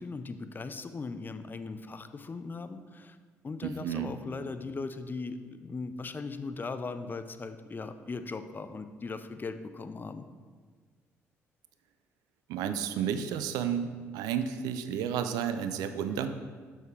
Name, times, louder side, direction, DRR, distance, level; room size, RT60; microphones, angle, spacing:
voice 1, 0.0-3.2 3.4-10.3, left 4 dB, 30° left, 10 dB, 0.5 m, -39 dB
voice 2, 3.6-4.1 12.5-16.4, right 8 dB, 70° right, 10 dB, 0.4 m, -32 dB
6.3 x 6.3 x 3.3 m, 1.5 s
hypercardioid pair, 45°, 7 cm